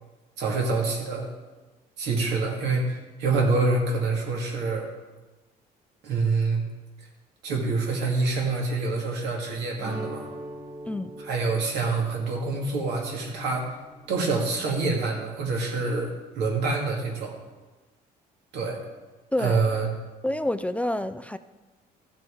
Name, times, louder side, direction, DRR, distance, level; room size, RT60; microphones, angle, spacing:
voice 1, 0.4-1.3 2.0-4.9 6.0-6.6 7.4-10.3 11.2-13.7 14.1-17.3 18.5-18.8 19.4-19.9, right 3 dB, 85° right, -1 dB, 2.3 m, -26 dB
sound 1, 9.8-14.6, equal, 35° right, 3.5 m, -42 dB
voice 2, 20.2-21.4, left 1 dB, 10° left, 12 dB, 0.3 m, -28 dB
13.5 x 7.7 x 3.8 m, 1.2 s
cardioid pair, 110°, 17 cm